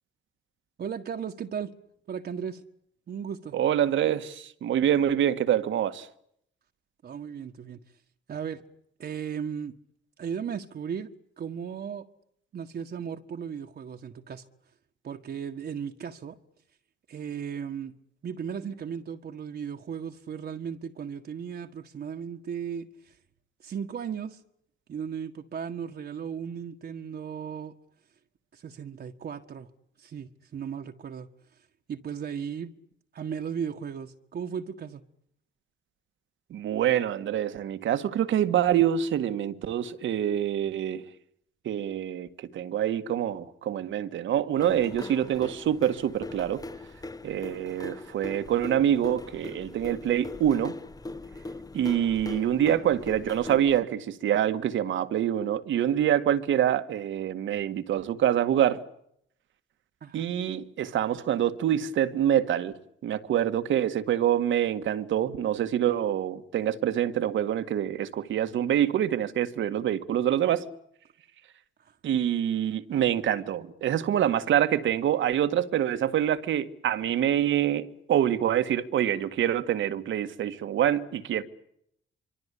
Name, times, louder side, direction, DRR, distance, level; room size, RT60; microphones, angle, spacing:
voice 1, 0.8-1.7 2.1-2.6 3.1-3.6 7.0-7.8 8.3-8.6 9.0-9.7 10.2-11.1 11.4-12.1 12.5-14.5 15.0-16.3 17.1-17.9 18.2-23.2 23.6-24.4 24.9-27.7 28.5-29.7 30.0-32.7 33.1-35.0 60.0-60.2 71.8-72.0, right 7 dB, 55° right, 1.7 m, -36 dB
voice 2, 3.5-6.1 36.5-41.0 41.7-46.6 47.2-50.8 51.7-58.8 60.1-62.7 63.0-70.7 72.0-81.4, right 10 dB, 75° right, 1.9 m, -26 dB
sound 1, 44.6-53.8, left 2 dB, 20° left, 1.1 m, -41 dB
25.0 x 25.0 x 8.6 m
cardioid pair, 90°, 20 cm